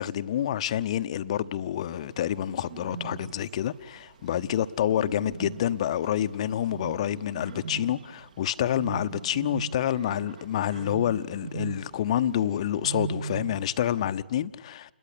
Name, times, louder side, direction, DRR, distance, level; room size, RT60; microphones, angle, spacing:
voice 1, 0.0-14.9, left 11 dB, 35° left, 0.9 m, -28 dB
Bird, 1.9-14.1, right 5 dB, 45° right, 2.0 m, -40 dB
28.5 x 21.5 x 8.3 m
figure-of-eight pair, 135°, 6 cm